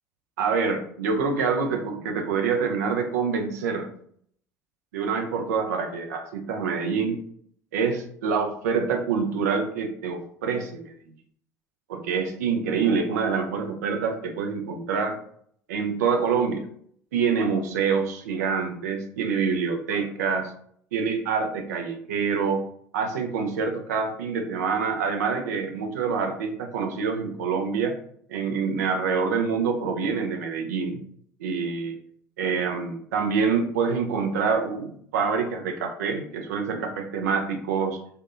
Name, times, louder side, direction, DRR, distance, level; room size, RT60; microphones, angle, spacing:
voice 1, 0.4-3.9 4.9-7.2 7.7-10.9 11.9-15.2 15.7-16.7 17.1-20.5 20.9-22.7 22.9-28.0 28.3-31.0 31.4-31.9 32.4-38.0, right 5 dB, 75° right, 5 dB, 0.4 m, -26 dB
2.6 x 2.1 x 2.3 m, 0.63 s
figure-of-eight pair, 65°, 9 cm